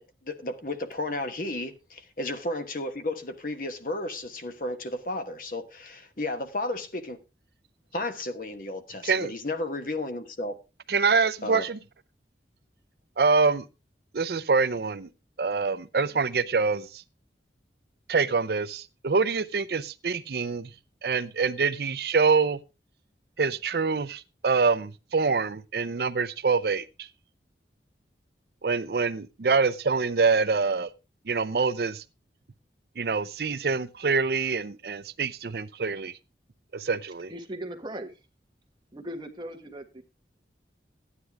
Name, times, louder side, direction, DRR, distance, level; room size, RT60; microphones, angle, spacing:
voice 1, 0.0-7.2 7.9-10.5 11.4-11.7, left 2 dB, 50° left, 1.2 m, -33 dB
voice 2, 10.9-11.8 13.2-13.6 14.1-15.1 15.4-17.0 18.1-20.7 21.0-22.6 23.4-27.1 28.6-30.9 31.3-32.0 33.0-36.1 36.7-37.3, right 4 dB, 60° right, 0.5 m, -25 dB
voice 3, 37.3-38.2 38.9-40.0, right 1 dB, 25° right, 1.4 m, -38 dB
13.0 x 9.8 x 3.5 m
head